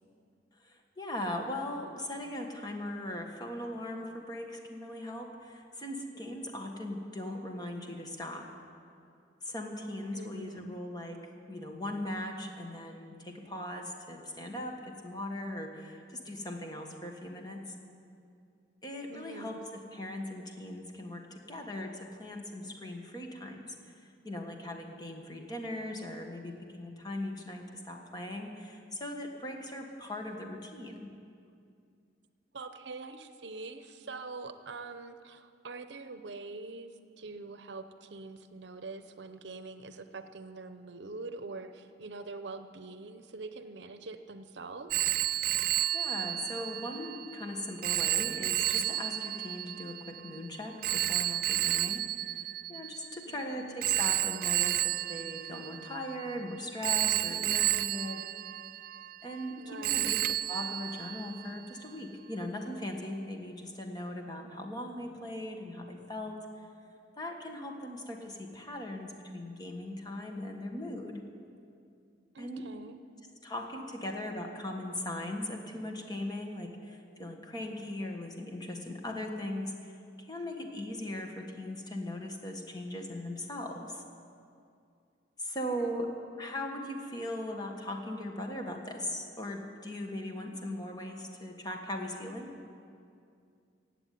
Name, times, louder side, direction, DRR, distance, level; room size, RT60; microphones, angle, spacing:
voice 1, 0.6-8.5 9.4-11.2 11.5-17.7 18.8-23.7 24.2-31.2 45.9-58.3 59.2-60.2 60.5-66.6 67.2-71.2 72.4-72.6 73.4-84.0 85.4-86.1 86.4-92.5, left 1 dB, 20° left, 2 dB, 1.5 m, -39 dB
voice 2, 10.1-10.7 19.1-19.6 32.5-45.1 53.3-53.8 59.6-60.1 72.3-73.0 85.7-86.1, right 3 dB, 70° right, 10 dB, 0.7 m, -44 dB
Telephone, 44.9-53.3 53.8-56.3 56.8-59.5 59.8-61.6, right 13 dB, 55° right, 0.3 m, -32 dB
16.0 x 8.1 x 9.3 m, 2.4 s
head